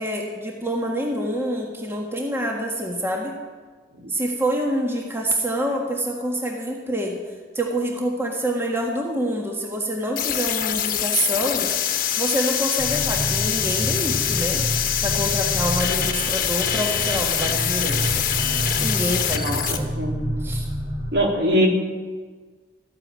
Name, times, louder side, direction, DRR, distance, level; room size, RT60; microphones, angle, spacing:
voice 1, 0.0-3.3 4.1-7.2 7.5-11.7 12.2-14.6 15.0-18.2 18.8-19.8 20.4-20.6, right 1 dB, 15° right, 0 dB, 1.6 m, -26 dB
sound 1, 10.2-19.8, left 9 dB, 50° left, 1.2 m, -24 dB
sound 2, 12.8-21.1, equal, 30° right, 2.2 m, -29 dB
voice 2, 21.1-21.7, equal, 65° right, 0 dB, 3.1 m, -22 dB
14.0 x 9.0 x 8.8 m, 1.4 s
head